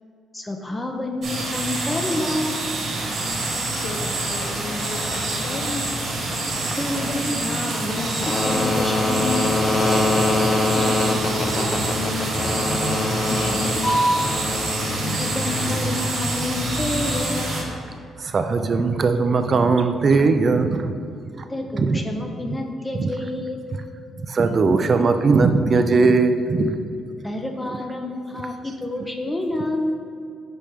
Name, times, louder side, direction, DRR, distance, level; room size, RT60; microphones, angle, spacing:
voice 1, 0.3-2.7 6.8-9.5 15.0-17.6 21.5-23.6 27.2-30.0, left 2 dB, 15° left, 3 dB, 0.6 m, -28 dB
sound 1, 1.2-17.6, right 2 dB, 65° right, 1.4 m, -27 dB
sound 2, 2.9-17.7, left 1 dB, 40° left, 1.0 m, -25 dB
voice 2, 3.7-6.2 10.8-11.2 11.5-14.1, left 3 dB, 75° left, 3 dB, 0.7 m, -34 dB
voice 3, 18.2-21.0 21.4-21.5 21.7-22.0 22.9-23.1 24.2-26.8, right 4 dB, 45° right, 8 dB, 0.4 m, -19 dB
5.2 x 4.4 x 5.0 m, 2.4 s
cardioid pair, 90°, 0 cm